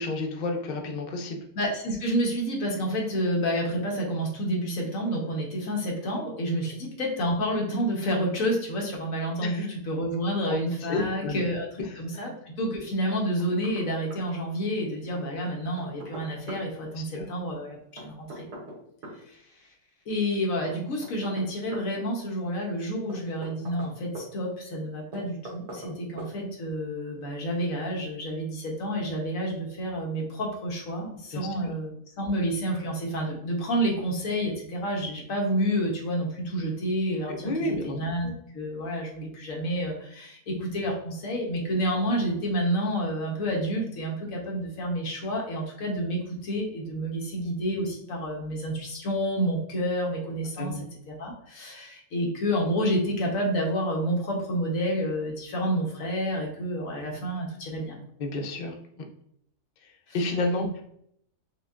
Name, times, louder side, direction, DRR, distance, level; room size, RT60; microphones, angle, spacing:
voice 1, 0.0-1.4 9.4-9.7 10.5-11.5 11.8-12.0 16.9-17.3 31.3-31.5 37.3-38.3 50.6-50.9 58.2-58.7 59.8-60.7, left 2 dB, 80° left, 3 dB, 0.4 m, -31 dB
voice 2, 1.5-11.7 12.0-18.5 19.3-19.4 20.1-38.3 38.5-50.7 51.1-58.0 60.1-60.2, equal, 65° left, -1 dB, 1.2 m, -29 dB
Knock, 13.1-13.9 14.1-14.2 15.4-16.7 18.0-19.2 20.7-21.9 23.1-24.3 25.1-25.9 26.2-26.3, right 1 dB, 90° right, 1.5 m, -41 dB
5.4 x 2.2 x 2.4 m, 0.69 s
omnidirectional pair, 1.6 m